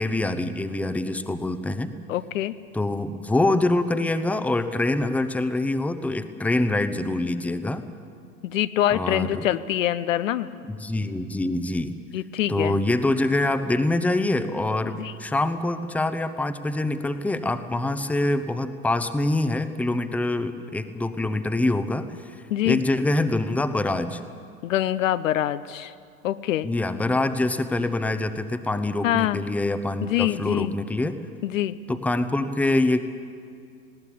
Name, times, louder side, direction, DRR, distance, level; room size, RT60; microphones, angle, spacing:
voice 1, 0.0-1.9 2.7-7.9 8.9-9.5 10.7-12.0 12.5-24.2 26.6-31.2 31.9-33.0, left 2 dB, 5° left, 10 dB, 0.9 m, -25 dB
voice 2, 2.1-2.5 8.4-10.5 12.1-12.8 15.0-15.1 22.5-22.8 24.6-25.9 26.2-26.7 29.0-29.4 30.0-30.7 31.4-31.8, left 13 dB, 60° left, 13 dB, 0.8 m, -24 dB
20.0 x 18.0 x 8.4 m, 2.4 s
figure-of-eight pair, 90°, 43 cm